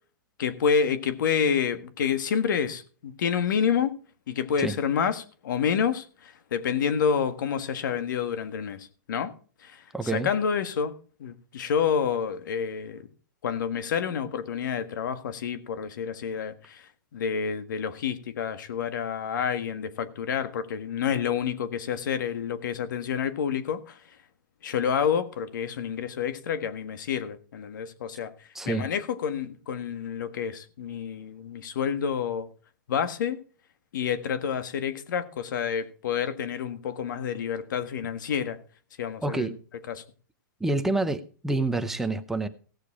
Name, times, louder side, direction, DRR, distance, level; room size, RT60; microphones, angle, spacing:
voice 1, 0.4-4.0 4.3-9.3 9.6-10.9 11.2-13.0 13.4-16.8 17.1-24.0 24.6-28.3 28.7-32.5 32.9-33.4 33.9-38.6 39.0-39.5 39.9-40.0, left 7 dB, 70° left, 1.6 m, -28 dB
voice 2, 9.9-10.3 28.5-28.9 39.2-39.6 40.6-42.5, right 2 dB, 5° right, 0.7 m, -27 dB
17.0 x 6.8 x 4.9 m
hypercardioid pair, 155°, 11 cm